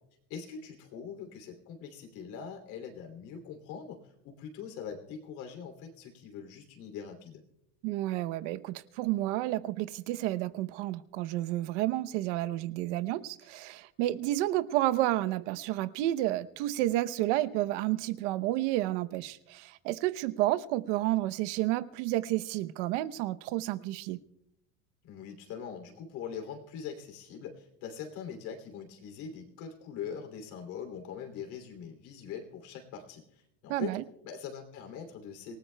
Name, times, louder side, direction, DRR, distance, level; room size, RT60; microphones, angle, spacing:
voice 1, 0.3-7.4 25.0-35.6, left 7 dB, 55° left, 4 dB, 2.9 m, -42 dB
voice 2, 7.8-24.2 33.7-34.0, right 15 dB, 75° right, 14 dB, 0.8 m, -31 dB
27.0 x 18.5 x 2.2 m, 0.81 s
cardioid pair, 170°, 36 cm